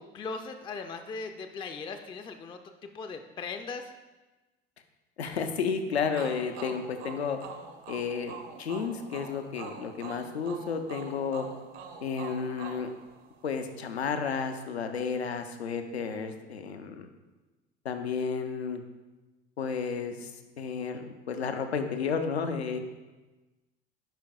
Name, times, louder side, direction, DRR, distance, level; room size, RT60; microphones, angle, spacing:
voice 1, 0.0-3.9, left 4 dB, 15° left, 7 dB, 0.4 m, -39 dB
voice 2, 5.2-7.4 7.9-11.5 12.0-12.9 13.4-17.1 17.8-18.8 19.6-20.3 20.6-22.8, left 6 dB, 85° left, 7 dB, 0.5 m, -32 dB
sound 1, 6.1-13.7, right 5 dB, 60° right, 0.8 m, -44 dB
8.9 x 5.1 x 2.3 m, 1.2 s
figure-of-eight pair, 60°, 31 cm